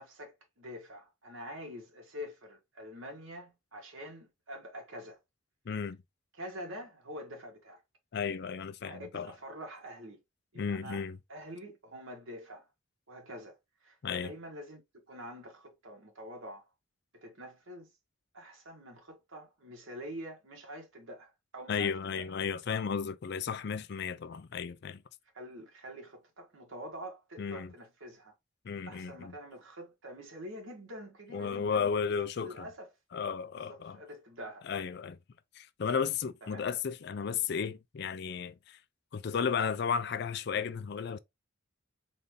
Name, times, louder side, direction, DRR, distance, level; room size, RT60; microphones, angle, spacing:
voice 1, 0.0-5.2 6.4-7.8 8.8-10.2 10.5-11.0 11.3-12.7 13.1-13.6 13.8-14.8 15.1-16.7 17.1-17.9 18.3-22.3 25.3-28.3 28.9-31.9 32.4-32.9 33.6-34.7 36.4-36.7, equal, 85° right, 1.6 m, -46 dB
voice 2, 5.7-6.0 8.1-9.3 10.6-11.2 14.0-14.3 21.7-25.0 27.4-27.7 28.6-29.3 31.3-32.7 33.1-34.0 34.6-35.2 35.6-38.8 39.1-41.2, left 6 dB, 55° left, 0.4 m, -34 dB
4.0 x 2.6 x 3.3 m
head